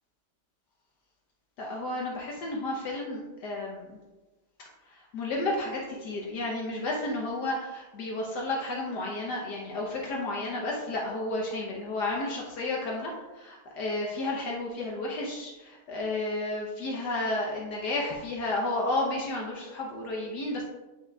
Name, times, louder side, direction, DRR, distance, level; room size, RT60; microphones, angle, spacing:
voice 1, 1.6-4.0 4.9-20.6, left 2 dB, 70° left, -2 dB, 1.5 m, -32 dB
9.1 x 5.7 x 2.3 m, 1.1 s
omnidirectional pair, 1.9 m